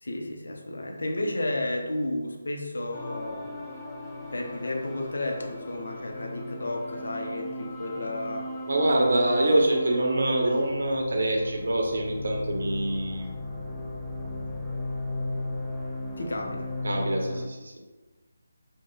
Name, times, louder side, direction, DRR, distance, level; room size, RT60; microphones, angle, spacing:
voice 1, 0.0-3.5 4.1-8.5 16.2-16.8, left 1 dB, 70° left, 2 dB, 0.5 m, -32 dB
sound 1, 2.9-17.5, left 1 dB, 5° left, 0.3 m, -36 dB
voice 2, 8.7-13.3 16.8-17.7, right 1 dB, 60° right, 0 dB, 0.6 m, -25 dB
2.5 x 2.1 x 3.3 m, 1.2 s
figure-of-eight pair, 155°, 0 cm